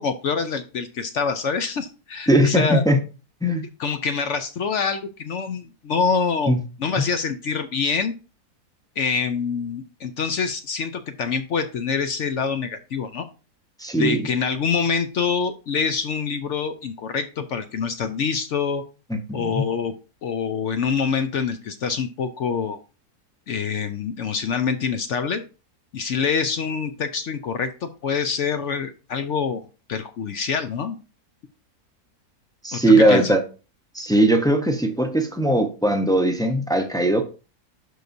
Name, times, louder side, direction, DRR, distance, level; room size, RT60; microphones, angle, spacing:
voice 1, 0.0-2.8 3.8-6.5 6.8-8.1 9.0-13.3 14.0-18.8 19.3-19.9 20.2-22.8 23.5-25.4 25.9-29.6 29.9-31.0 32.7-33.3, left 5 dB, 65° left, 9 dB, 0.8 m, -25 dB
voice 2, 2.3-3.0 3.4-3.7 6.5-6.6 13.8-14.3 19.1-19.6 32.6-33.4 33.9-37.2, right 1 dB, 5° left, 4 dB, 0.5 m, -19 dB
11.5 x 4.7 x 2.6 m, 0.33 s
omnidirectional pair, 1.6 m